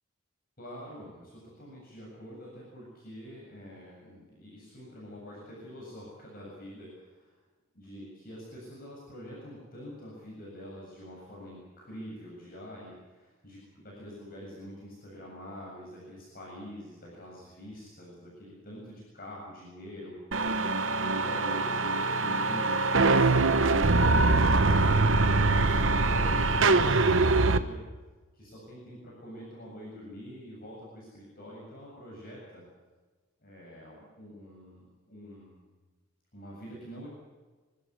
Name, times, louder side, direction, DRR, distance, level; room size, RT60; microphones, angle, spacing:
voice 1, 0.6-7.4 7.7-20.2 20.9-27.8 28.3-32.7 33.4-35.6 36.3-37.1, equal, 50° left, -4 dB, 7.5 m, -45 dB
sound 1, 20.3-27.6, right 3 dB, 70° right, 1.1 m, -23 dB
26.5 x 13.5 x 9.7 m, 1.3 s
head